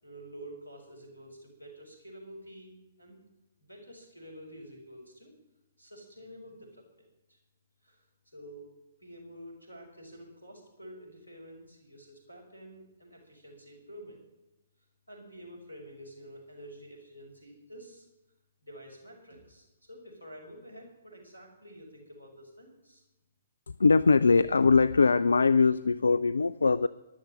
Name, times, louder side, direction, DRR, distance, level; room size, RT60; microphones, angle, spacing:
voice 1, 0.0-3.2 3.6-5.3 5.8-7.4 7.8-8.0 8.3-8.7 9.0-14.2 15.1-18.1 18.6-23.0, equal, 90° left, 2 dB, 5.8 m, -49 dB
voice 2, 23.7-26.9, left 4 dB, 70° left, 16 dB, 0.5 m, -22 dB
13.5 x 12.0 x 7.7 m, 0.99 s
figure-of-eight pair, 125°, 0 cm